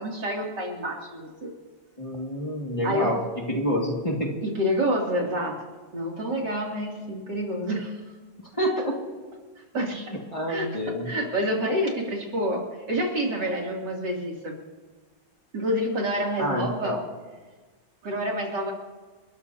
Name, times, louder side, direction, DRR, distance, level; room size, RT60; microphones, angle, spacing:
voice 1, 0.0-1.5 2.8-3.1 4.4-5.6 5.9-7.9 9.7-10.2 10.5-14.6 15.5-17.0 18.0-18.7, equal, 75° right, -1 dB, 3.5 m, -28 dB
voice 2, 2.0-3.2 3.5-4.3 8.6-9.0 9.9-10.0 10.3-11.1 16.4-17.0, equal, 20° left, -2 dB, 2.0 m, -27 dB
30.0 x 13.5 x 2.8 m, 1.3 s
omnidirectional pair, 1.9 m